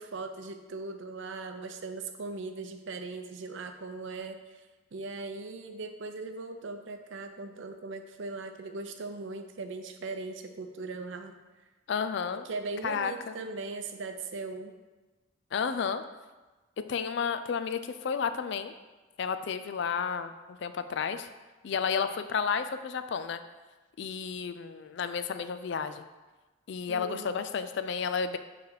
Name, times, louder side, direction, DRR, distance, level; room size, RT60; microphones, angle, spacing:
voice 1, 0.0-4.6 4.9-11.3 12.4-14.7 26.9-27.3, right 3 dB, 65° right, 6 dB, 0.5 m, -39 dB
voice 2, 11.9-12.5 12.8-13.4 15.5-16.0 16.9-18.7 19.2-20.3 20.6-21.3 21.6-23.4 24.0-26.1 26.7-28.4, left 6 dB, 60° left, 10 dB, 0.3 m, -31 dB
7.1 x 3.3 x 4.6 m, 1.2 s
head